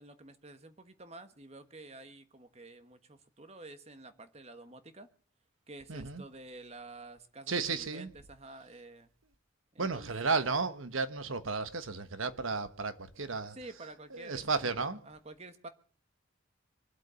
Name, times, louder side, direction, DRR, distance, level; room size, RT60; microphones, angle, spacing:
voice 1, 0.0-5.1 5.7-9.1 9.7-10.4 13.5-15.7, right 2 dB, 30° right, 1.3 m, -50 dB
voice 2, 5.9-6.2 7.5-8.1 9.8-13.6 14.1-15.0, right 4 dB, 90° right, 1.3 m, -33 dB
24.0 x 8.1 x 6.9 m
head